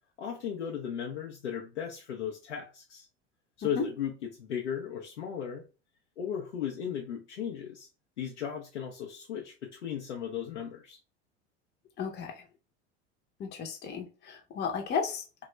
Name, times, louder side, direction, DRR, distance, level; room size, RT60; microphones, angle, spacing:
voice 1, 0.2-3.1 3.6-4.1 4.4-5.6 6.2-7.9 8.2-11.0, left 8 dB, 80° left, 0.6 m, -36 dB
voice 2, 12.0-12.5 13.4-15.4, left 6 dB, 30° left, 0.7 m, -34 dB
2.8 x 2.3 x 3.1 m
figure-of-eight pair, 75°, 35 cm